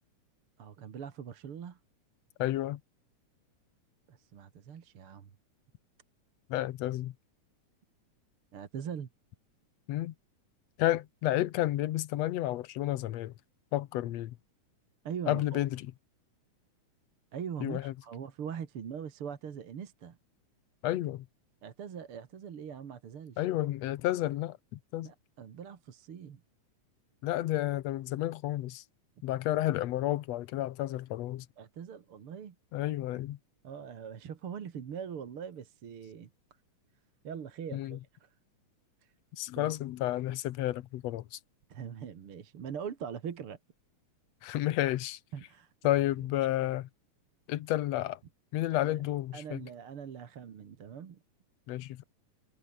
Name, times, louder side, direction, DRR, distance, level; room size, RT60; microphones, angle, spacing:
voice 1, 0.6-1.8 4.1-5.3 8.5-9.1 15.0-15.6 17.3-20.2 21.6-23.5 25.0-26.4 31.6-32.6 33.6-36.3 37.2-38.3 39.6-39.7 41.7-43.6 45.3-45.7 48.7-49.0 49.3-51.2, right 7 dB, 50° right, 2.4 m, -42 dB
voice 2, 2.4-2.8 6.5-7.1 9.9-10.1 10.8-13.3 13.7-14.4 15.3-15.9 17.6-17.9 20.8-21.3 23.4-25.1 27.2-28.8 29.2-31.5 32.7-33.4 37.7-38.0 39.4-41.4 44.4-45.2 45.8-46.9 47.5-48.2 48.5-49.6 51.7-52.0, left 14 dB, 70° left, 1.8 m, -31 dB
omnidirectional pair, 3.5 m